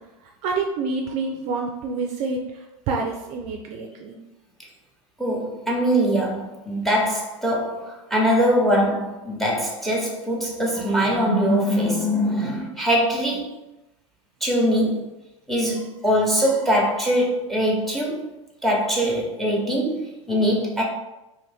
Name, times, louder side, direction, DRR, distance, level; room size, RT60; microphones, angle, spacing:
voice 1, 0.4-2.4 2.9-4.2, right 4 dB, 45° right, 1 dB, 0.4 m, -27 dB
voice 2, 5.2-13.5 14.4-15.0 15.5-18.2 18.6-20.8, equal, ahead, -2 dB, 0.9 m, -22 dB
2.7 x 2.5 x 3.4 m, 0.97 s
hypercardioid pair, 100°, 17 cm